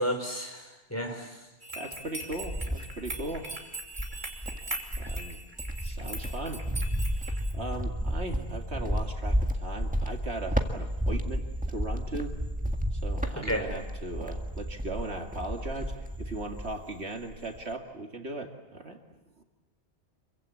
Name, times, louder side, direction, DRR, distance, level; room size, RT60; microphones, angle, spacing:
voice 1, 0.0-1.4 13.4-13.6, equal, 15° left, 3 dB, 4.7 m, -31 dB
sound 1, 1.6-7.5, right 2 dB, 45° right, 3.3 m, -40 dB
voice 2, 1.7-3.5 5.0-5.4 5.8-6.7 7.1-12.4 12.9-19.0 19.4-19.5, right 2 dB, 70° right, 3 dB, 2.5 m, -38 dB
Cricket, 1.9-3.4 3.9-16.9 17.2-17.7, equal, 5° right, 1.8 m, -32 dB
27.0 x 23.5 x 8.4 m, 1.1 s
omnidirectional pair, 1.2 m